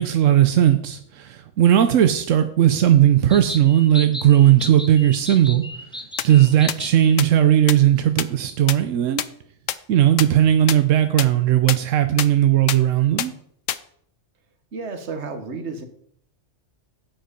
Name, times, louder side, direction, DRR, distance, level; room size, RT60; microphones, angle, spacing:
voice 1, 0.0-5.6 6.2-9.2 9.9-13.3, right 11 dB, 90° right, 9 dB, 1.0 m, -17 dB
sound 1, 3.3-7.2, left 1 dB, 5° left, 0.5 m, -35 dB
sound 2, 6.2-6.3 6.7-6.8 7.2-7.3 7.7-7.8 8.2-8.3 8.7-8.8 9.2-9.3 9.7-9.8 10.2-10.3 10.7-10.8 11.2-11.3 11.7-11.8 12.2-12.3 12.7-12.8 13.2-13.3 13.7-13.8, left 12 dB, 85° left, 1.0 m, -24 dB
voice 2, 6.3-6.6 14.7-15.9, right 4 dB, 65° right, 8 dB, 1.6 m, -32 dB
8.8 x 8.0 x 5.1 m, 0.66 s
omnidirectional pair, 1.3 m